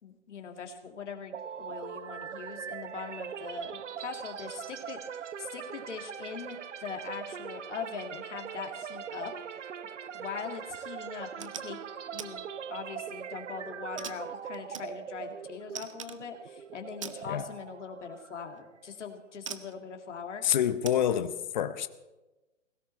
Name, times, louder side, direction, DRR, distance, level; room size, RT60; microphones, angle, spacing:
voice 1, 0.0-9.3 10.1-11.8 12.1-12.4 12.7-20.4, left 6 dB, 65° left, 4 dB, 2.2 m, -41 dB
sound 1, 1.3-19.1, right 8 dB, 70° right, 0.9 m, -41 dB
sound 2, 11.2-11.7 12.2-12.3 12.7-13.2 14.0-15.3 15.7-16.2 17.0-17.2 18.5-18.7 19.5-19.8 20.8-21.0, right 7 dB, 25° right, 0.5 m, -42 dB
voice 2, 20.4-21.9, left 10 dB, 35° left, 13 dB, 0.7 m, -27 dB
17.5 x 15.5 x 4.3 m, 1.1 s
hypercardioid pair, 150°, 38 cm